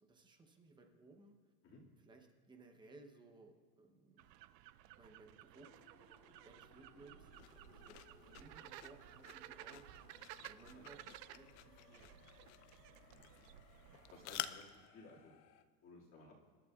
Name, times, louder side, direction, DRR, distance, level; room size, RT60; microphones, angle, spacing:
voice 1, 0.0-1.4 2.0-4.3 5.0-5.9 6.4-9.9 10.5-11.0 11.3-12.1, right 3 dB, 10° right, 4 dB, 0.8 m, -61 dB
sound 1, 4.2-14.5, right 14 dB, 80° right, 0.6 m, -57 dB
sound 2, 5.5-15.7, left 10 dB, 75° left, 0.9 m, -68 dB
sound 3, 7.3-14.9, left 14 dB, 45° left, 0.5 m, -52 dB
voice 2, 10.3-10.8 13.1-13.4 14.1-14.6 14.9-15.3 15.8-16.3, left 3 dB, 25° left, -4 dB, 2.2 m, -59 dB
26.5 x 11.5 x 2.4 m, 1.5 s
supercardioid pair, 155°, 49 cm